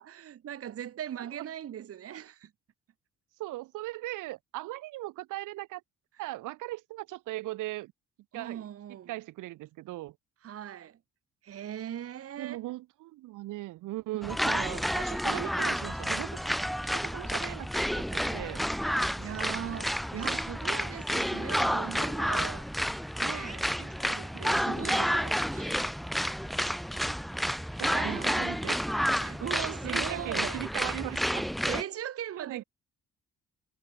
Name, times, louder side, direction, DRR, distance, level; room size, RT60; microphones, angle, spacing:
voice 1, 0.0-2.5 8.3-9.1 10.4-11.0 11.4-12.6 19.2-22.7 23.2-25.9 27.0-28.6 29.2-30.6 31.7-32.6, right 10 dB, 50° right, 1.0 m, -40 dB
voice 2, 3.4-5.8 6.2-7.9 8.3-10.2 12.4-16.4 16.9-18.6 24.3-25.2 27.8-28.8 29.8-31.5 32.4-32.6, right 17 dB, 90° right, 1.2 m, -39 dB
sound 1, 14.2-31.8, equal, ahead, 0.9 m, -30 dB
cardioid pair, 90°, 30 cm